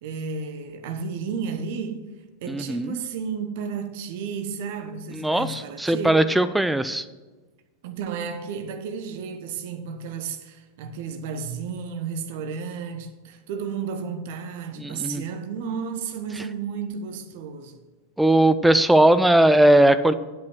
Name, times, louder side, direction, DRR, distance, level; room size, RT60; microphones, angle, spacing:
voice 1, 0.0-6.3 7.8-17.8, right 6 dB, 50° right, 1.1 m, -33 dB
voice 2, 2.5-3.0 5.1-7.0 14.8-15.2 18.2-20.1, right 1 dB, 5° right, 0.5 m, -19 dB
8.5 x 7.9 x 6.1 m
figure-of-eight pair, 90°, 0 cm